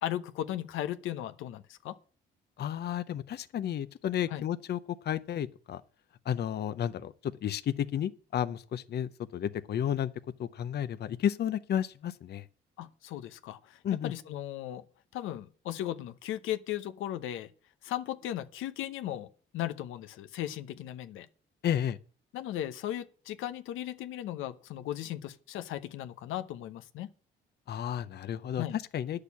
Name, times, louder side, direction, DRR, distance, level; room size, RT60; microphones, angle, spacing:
voice 1, 0.0-2.0 4.3-4.4 12.8-14.8 15.1-17.5 17.8-21.3 22.3-27.1 28.6-28.8, left 12 dB, 90° left, 0.8 m, -37 dB
voice 2, 2.6-5.8 6.3-10.1 10.4-12.5 13.8-14.1 21.6-22.0 27.7-29.2, left 10 dB, 55° left, 0.7 m, -32 dB
10.0 x 6.6 x 8.3 m
cardioid pair, 90°, 20 cm